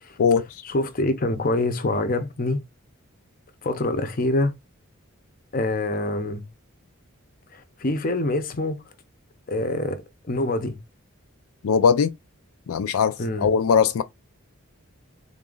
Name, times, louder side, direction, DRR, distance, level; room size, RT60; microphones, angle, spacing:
voice 1, 0.6-2.6 3.6-4.5 5.5-6.4 7.5-8.8 9.5-10.0 10.3-10.8 13.2-13.5, left 2 dB, 40° left, 0.7 m, -25 dB
voice 2, 11.6-12.1 12.7-14.0, left 6 dB, 80° left, 0.4 m, -20 dB
3.8 x 2.5 x 3.8 m
head